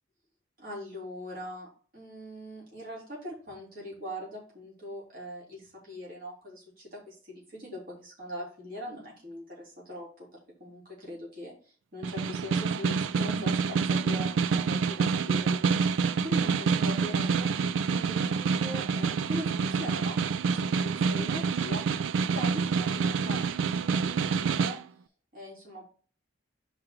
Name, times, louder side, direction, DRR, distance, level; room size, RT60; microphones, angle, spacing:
voice 1, 0.6-10.3 10.6-11.5 11.9-15.6 16.2-20.2 20.5-21.8 22.3-23.4 23.7-24.1 24.4-24.8 25.3-25.8, equal, 45° right, -5 dB, 3.5 m, -41 dB
Snare drum, 12.0-24.8, right 5 dB, 75° right, 0.3 m, -27 dB
4.9 x 4.8 x 5.9 m, 0.40 s
head